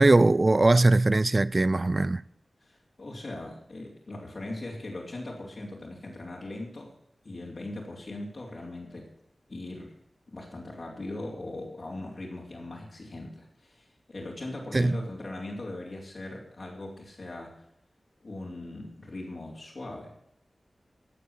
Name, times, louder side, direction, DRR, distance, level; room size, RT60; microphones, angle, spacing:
voice 1, 0.0-2.2 14.7-15.0, right 2 dB, 35° right, 0.4 m, -20 dB
voice 2, 2.6-6.9 7.2-9.1 9.5-9.9 10.3-17.6 18.2-20.2, left 2 dB, 50° left, 3.4 m, -40 dB
14.5 x 8.5 x 7.3 m
wide cardioid pair, 90°, 0 cm